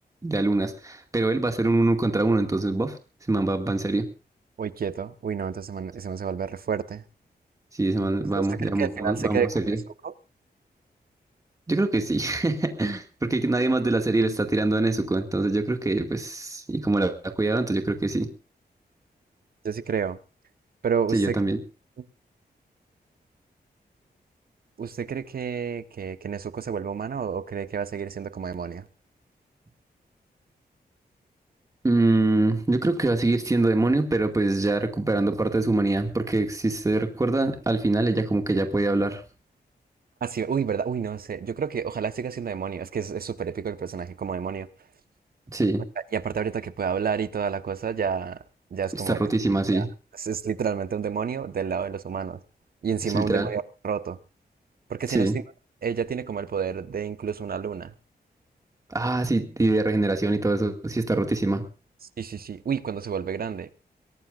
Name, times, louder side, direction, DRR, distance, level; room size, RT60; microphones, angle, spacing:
voice 1, 0.2-3.0 3.3-4.1 7.7-9.8 11.7-18.3 21.1-21.6 31.8-39.2 45.5-45.8 48.9-49.9 53.1-53.5 55.1-55.4 58.9-61.6, right 2 dB, 20° right, 2.1 m, -24 dB
voice 2, 4.6-7.0 8.3-9.5 10.0-10.1 19.6-20.2 20.8-21.4 24.8-28.9 40.2-44.7 46.1-48.4 48.7-49.2 49.7-49.9 50.2-52.4 52.8-54.2 54.9-55.4 55.8-57.9 62.2-63.7, right 7 dB, 60° right, 1.1 m, -30 dB
23.0 x 18.0 x 2.5 m
wide cardioid pair, 130°, 17 cm